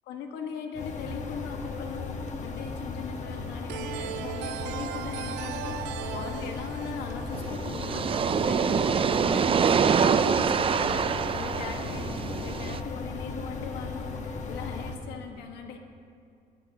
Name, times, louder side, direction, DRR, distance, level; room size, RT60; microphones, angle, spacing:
voice 1, 0.1-15.8, left 5 dB, 85° left, 3 dB, 1.5 m, -40 dB
sound 1, 0.7-15.0, left 4 dB, 45° left, 1.3 m, -36 dB
sound 2, 3.7-8.3, right 12 dB, 90° right, 0.5 m, -38 dB
sound 3, 7.3-12.8, right 6 dB, 30° right, 0.5 m, -25 dB
22.0 x 12.5 x 2.9 m, 2.4 s
cardioid pair, 110°, 17 cm